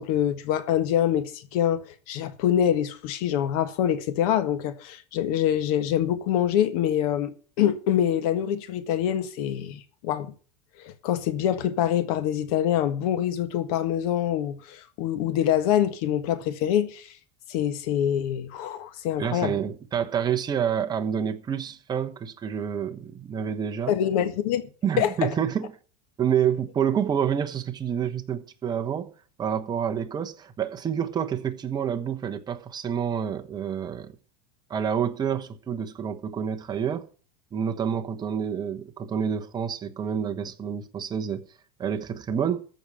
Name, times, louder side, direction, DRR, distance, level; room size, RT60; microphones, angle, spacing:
voice 1, 0.0-10.3 10.8-17.1 17.5-19.6 23.9-24.7 25.0-25.3, left 10 dB, 65° left, 1.6 m, -25 dB
voice 2, 19.2-23.9 24.8-25.7 26.2-29.1 29.4-34.1 34.7-37.1 37.5-41.5 41.8-42.6, right 8 dB, 20° right, 1.1 m, -28 dB
14.0 x 4.9 x 9.1 m
supercardioid pair, 145°, 20 cm